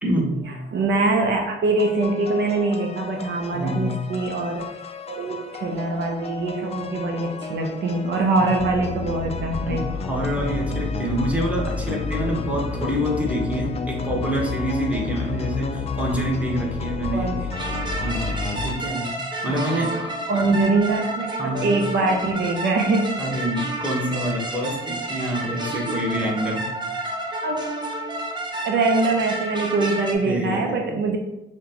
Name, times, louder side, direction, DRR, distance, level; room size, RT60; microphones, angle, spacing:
voice 1, 0.0-0.5 3.5-4.0 8.4-8.6 9.7-17.4 18.0-19.2 19.4-20.1 21.4-21.7 23.2-26.7 30.2-31.0, equal, 5° right, -3 dB, 1.1 m, -26 dB
voice 2, 0.7-4.7 5.1-9.9 10.5-10.6 17.1-17.4 19.5-23.2 25.7-26.0 27.4-27.7 28.6-31.2, right 3 dB, 65° right, 2 dB, 0.6 m, -23 dB
sound 1, 1.8-18.7, left 4 dB, 30° left, 0.3 m, -31 dB
sound 2, 17.5-30.1, right 1 dB, 20° right, 0.7 m, -30 dB
5.8 x 2.2 x 2.9 m, 0.95 s
cardioid pair, 90°, 20 cm